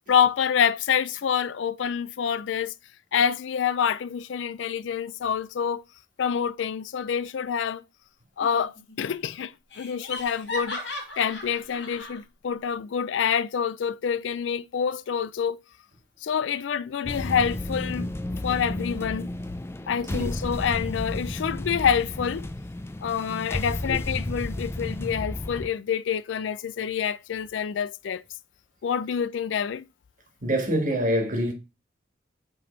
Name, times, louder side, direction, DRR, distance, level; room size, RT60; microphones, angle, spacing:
voice 1, 0.1-2.7 3.1-5.8 6.2-7.8 8.4-10.8 11.2-15.6 16.2-18.1 18.4-19.3 19.9-22.5 23.0-28.2 28.8-29.8, left 7 dB, 90° left, 0.4 m, -27 dB
Laughter, 8.4-8.9 9.2-9.3 9.7-12.2, left 2 dB, 75° left, 2.2 m, -36 dB
sound 1, 17.0-25.7, left 1 dB, 15° left, 0.3 m, -32 dB
voice 2, 30.4-31.5, equal, 45° right, 1.6 m, -25 dB
5.2 x 3.5 x 5.1 m
head